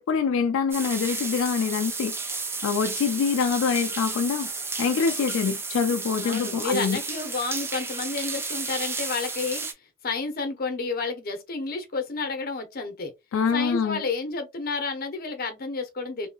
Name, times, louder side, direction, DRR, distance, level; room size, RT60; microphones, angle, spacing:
voice 1, 0.0-4.5 4.8-7.0 13.3-14.0, left 6 dB, 75° left, 0.3 m, -25 dB
sound 1, 0.7-9.7, right 4 dB, 10° right, 0.4 m, -32 dB
voice 2, 6.2-9.6 10.0-13.1 13.5-16.3, left 4 dB, 45° left, 0.7 m, -30 dB
2.9 x 2.7 x 2.3 m
head